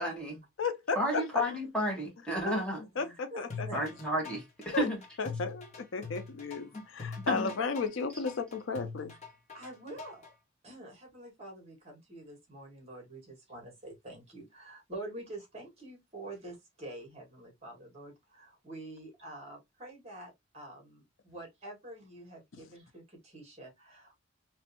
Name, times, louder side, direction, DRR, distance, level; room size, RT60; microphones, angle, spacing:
voice 1, 0.0-0.4 0.9-2.8 3.7-5.0 6.7-6.8 7.3-7.5, equal, 5° left, 1.7 m, -32 dB
voice 2, 0.6-1.4 3.0-3.7 4.7-4.9 5.2-9.1, left 4 dB, 80° left, 0.6 m, -34 dB
voice 3, 3.0-3.8 9.5-10.3 10.6-24.2, right 1 dB, 35° right, 1.9 m, -47 dB
sound 1, 3.5-10.3, left 5 dB, 35° left, 1.3 m, -43 dB
3.4 x 3.1 x 2.8 m
head